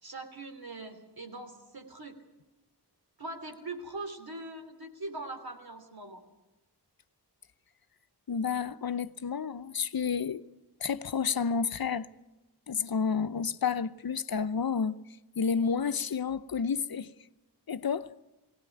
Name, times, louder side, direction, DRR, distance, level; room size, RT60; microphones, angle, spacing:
voice 1, 0.0-2.2 3.2-6.2, right 2 dB, 60° right, 3.2 m, -41 dB
voice 2, 8.3-10.4 10.8-12.1 12.7-15.0 15.4-17.1 17.7-18.1, left 6 dB, 60° left, 0.8 m, -30 dB
19.5 x 17.5 x 9.2 m
wide cardioid pair, 55°, 41 cm